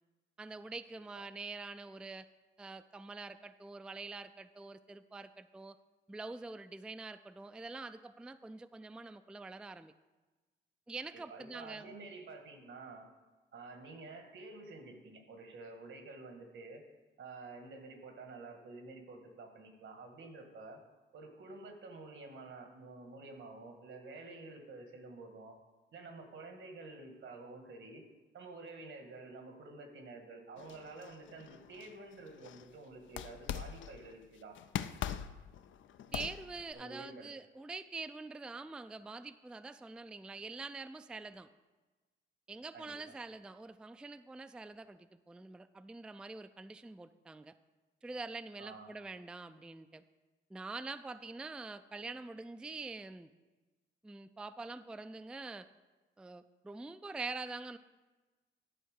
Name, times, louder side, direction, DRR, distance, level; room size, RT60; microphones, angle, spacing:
voice 1, 0.4-2.3 2.6-5.8 6.1-9.9 10.9-11.9 36.1-41.5 42.5-47.5 48.0-50.0 50.5-53.3 54.0-55.7 56.2-57.8, right 3 dB, 5° right, 11 dB, 0.3 m, -45 dB
voice 2, 11.1-13.1 13.5-16.8 17.2-20.8 21.1-25.5 25.9-28.1 28.3-34.5 36.7-37.3 42.7-43.2 48.6-48.9, right 3 dB, 75° right, 5 dB, 1.6 m, -50 dB
sound 1, 30.6-32.7 33.1-34.1 34.5-36.7, left 10 dB, 70° left, 0.5 m, -43 dB
11.0 x 4.4 x 6.5 m, 1.2 s
cardioid pair, 75°, 20 cm